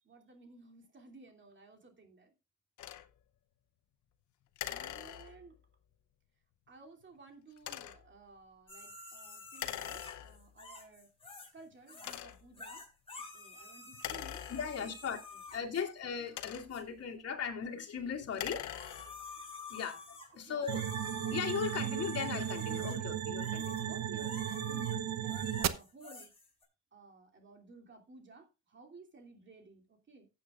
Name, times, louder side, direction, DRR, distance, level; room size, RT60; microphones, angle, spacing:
voice 1, 0.0-2.3 4.6-5.5 6.7-11.1 11.5-12.8 13.3-14.9 15.3-15.4 15.7-15.8 20.5-20.6 23.9-24.9 25.2-26.3 26.9-30.3, right 3 dB, 40° right, 2.9 m, -56 dB
sound 1, 2.8-3.1 4.6-5.6 7.6-8.1 9.6-10.6 11.2-11.3 12.0-12.6 13.9-15.1 16.0-16.9 18.2-19.3, left 12 dB, 75° left, 0.8 m, -43 dB
sound 2, 8.7-11.6 11.9-12.2 12.5-15.9 16.7-16.8 18.4-26.6, left 3 dB, 20° left, 4.2 m, -50 dB
voice 2, 14.5-15.2 15.5-18.7 19.7-20.8 21.2-23.9, left 7 dB, 55° left, 2.6 m, -38 dB
sound 3, 20.7-25.7, right 10 dB, 60° right, 0.9 m, -35 dB
15.0 x 8.4 x 2.4 m
cardioid pair, 90°, 30 cm